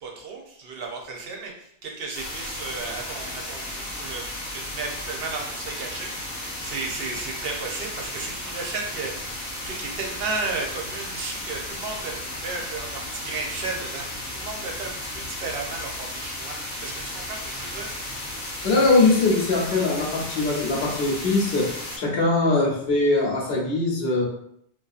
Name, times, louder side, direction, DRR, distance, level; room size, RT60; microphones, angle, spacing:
voice 1, 0.0-14.0 14.3-18.0, right 3 dB, 70° right, 1 dB, 0.8 m, -34 dB
sound 1, 2.1-22.0, left 1 dB, 50° left, 0.9 m, -34 dB
voice 2, 18.6-21.7 22.0-24.3, left 3 dB, 75° left, -2 dB, 0.9 m, -21 dB
2.6 x 2.3 x 2.3 m, 0.70 s
omnidirectional pair, 1.0 m